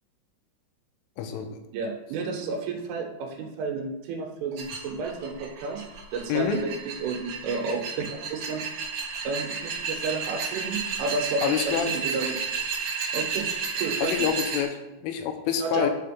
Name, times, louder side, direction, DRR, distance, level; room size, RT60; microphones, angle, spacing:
voice 1, 1.2-1.6 6.3-6.6 11.4-11.9 14.0-15.9, left 8 dB, 80° left, 6 dB, 3.4 m, -27 dB
voice 2, 1.7-5.8 6.1-8.6 9.3-12.4 13.1-13.5 13.7-14.3 15.6-15.9, right 4 dB, 85° right, 2 dB, 3.8 m, -31 dB
sound 1, 4.6-14.6, right 5 dB, 55° right, 2.7 m, -32 dB
10.5 x 5.0 x 5.9 m, 0.96 s
omnidirectional pair, 5.6 m